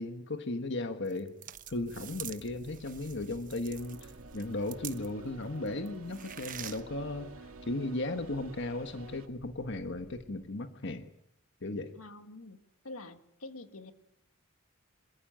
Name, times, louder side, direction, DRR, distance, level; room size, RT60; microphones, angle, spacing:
voice 1, 0.0-1.3 1.7-11.1 11.6-11.9, left 2 dB, 55° left, 8 dB, 1.3 m, -36 dB
sound 1, 1.1-5.3 5.7-6.8, right 11 dB, 40° right, 1.1 m, -46 dB
sound 2, 1.7-10.3, equal, 25° right, 5.0 m, -57 dB
sound 3, 3.7-9.3, right 3 dB, 80° right, 1.8 m, -50 dB
voice 2, 12.0-12.6 12.8-13.9, left 2 dB, 80° left, 9 dB, 1.9 m, -46 dB
26.5 x 14.5 x 8.9 m, 0.79 s
head